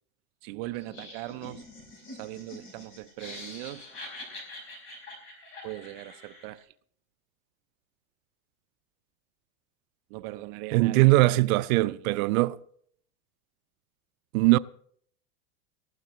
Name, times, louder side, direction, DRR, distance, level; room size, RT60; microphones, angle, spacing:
voice 1, 0.4-1.6 2.1-3.9 5.6-6.7 10.1-12.1, right 17 dB, 45° right, 0.6 m, -40 dB
Laughter, 0.7-6.6, left 2 dB, 30° left, 4.6 m, -45 dB
voice 2, 10.7-12.6 14.3-14.6, right 19 dB, 90° right, 0.5 m, -21 dB
19.0 x 14.5 x 3.0 m
supercardioid pair, 170°, 41 cm